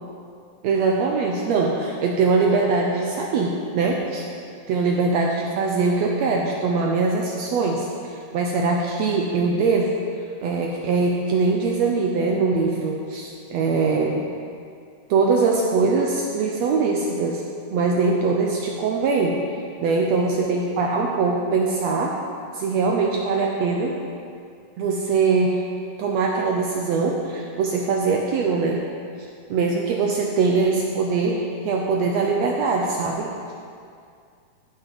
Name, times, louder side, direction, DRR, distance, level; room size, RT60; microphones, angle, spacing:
voice 1, 0.6-4.2 4.7-9.9 10.4-14.2 15.1-17.4 17.7-19.4 19.8-22.2 22.5-24.0 24.8-25.6 26.0-28.8 29.5-33.3, right 4 dB, 75° right, 0 dB, 1.6 m, -22 dB
14.0 x 5.9 x 5.1 m, 2.3 s
omnidirectional pair, 3.8 m